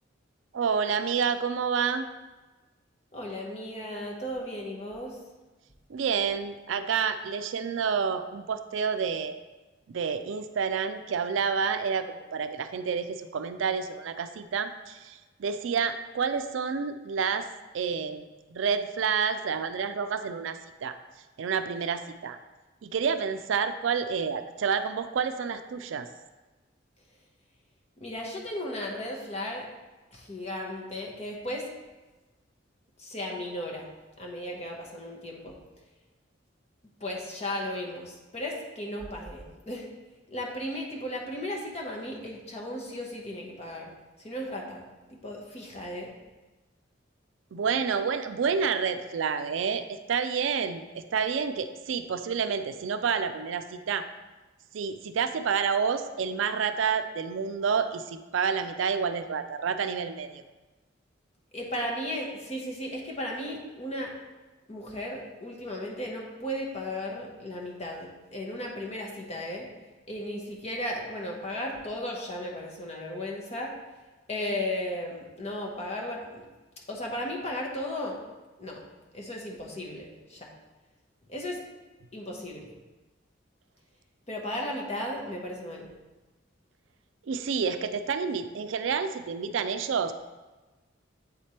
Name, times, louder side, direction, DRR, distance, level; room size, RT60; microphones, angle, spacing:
voice 1, 0.5-2.1 5.9-9.4 9.9-17.5 17.7-18.2 18.5-21.0 21.4-22.4 22.8-26.1 47.5-54.0 54.7-60.4 87.3-90.1, right 6 dB, 75° right, 9 dB, 0.4 m, -29 dB
voice 2, 3.1-5.2 28.0-29.7 30.1-31.7 33.0-33.9 34.2-35.5 37.0-39.9 40.3-43.9 44.2-44.8 45.1-46.1 61.5-64.1 64.7-69.7 70.1-73.7 74.3-76.4 76.9-78.2 78.6-78.8 79.1-80.5 81.3-81.6 82.1-82.7 84.3-85.9, left 1 dB, 35° left, -2 dB, 1.1 m, -35 dB
8.2 x 3.4 x 4.2 m, 1.2 s
head